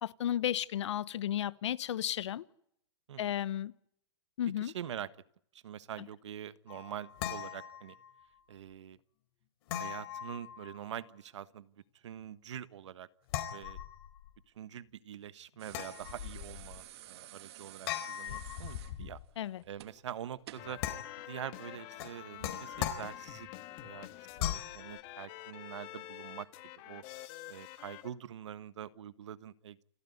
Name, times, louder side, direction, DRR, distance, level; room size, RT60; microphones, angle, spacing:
voice 1, 0.0-2.4 3.2-3.7 4.4-4.7 6.0-6.1 19.4-19.6, left 11 dB, 80° left, 1.1 m, -33 dB
voice 2, 4.6-5.1 5.5-8.0 8.5-9.0 9.8-11.7 12.0-13.1 13.5-13.8 14.6-19.2 19.7-20.8 21.3-26.5 26.8-27.0 27.5-29.8, right 10 dB, 85° right, 1.4 m, -45 dB
sound 1, 6.7-8.3 9.7-11.1 13.3-14.3 15.7-16.8 17.9-19.3 20.8-21.4 22.0-23.6 24.4-24.8, left 11 dB, 55° left, 4.2 m, -39 dB
sound 2, 15.6-20.8 22.1-22.3, right 13 dB, 65° right, 2.7 m, -52 dB
sound 3, 20.6-28.1, left 16 dB, 40° left, 1.9 m, -48 dB
29.0 x 13.5 x 9.7 m
hypercardioid pair, 145°, 15 cm